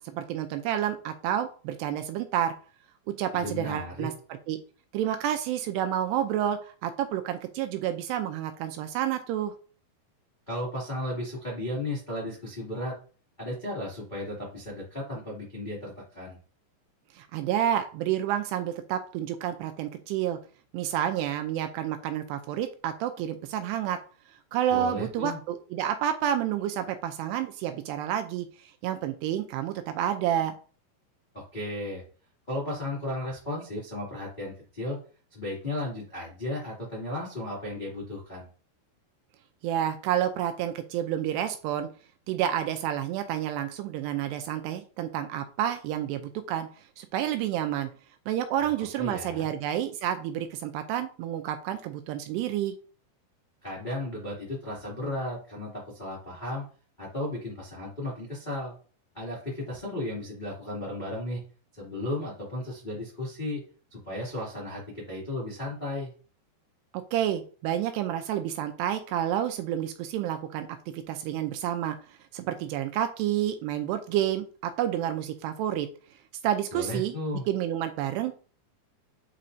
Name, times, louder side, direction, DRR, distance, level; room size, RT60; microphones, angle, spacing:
voice 1, 0.0-2.5 3.2-4.1 4.5-4.6 4.9-9.5 17.2-20.4 20.7-24.0 24.5-28.5 28.8-30.6 39.6-41.9 42.3-46.7 47.0-47.9 48.3-52.7 66.9-70.7 70.9-72.0 72.3-75.9 76.4-77.1 77.5-78.3, right 11 dB, 85° right, 7 dB, 2.5 m, -29 dB
voice 2, 3.3-4.1 10.5-12.9 13.4-16.4 24.7-25.4 31.3-32.0 32.5-35.0 35.3-38.5 48.6-48.7 49.0-49.5 53.6-56.6 57.0-58.7 59.1-61.4 61.7-63.6 63.9-66.1 76.7-77.4, left 1 dB, 60° left, -6 dB, 0.5 m, -34 dB
8.3 x 4.4 x 2.6 m, 0.38 s
omnidirectional pair, 5.1 m